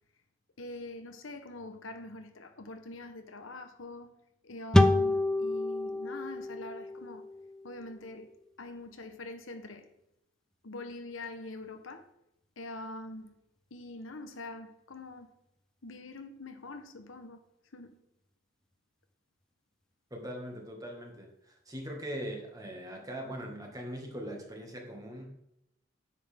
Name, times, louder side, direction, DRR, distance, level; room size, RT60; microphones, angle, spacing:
voice 1, 0.6-4.2 4.4-7.3 7.6-9.9 10.6-12.1 12.6-13.3 13.7-15.4 15.8-17.4 17.7-18.0, left 2 dB, 85° left, 1.1 m, -44 dB
sound 1, 4.7-8.1, left 1 dB, 5° left, 0.4 m, -28 dB
voice 2, 20.1-25.6, equal, 20° right, 1.8 m, -41 dB
9.6 x 7.5 x 3.6 m
head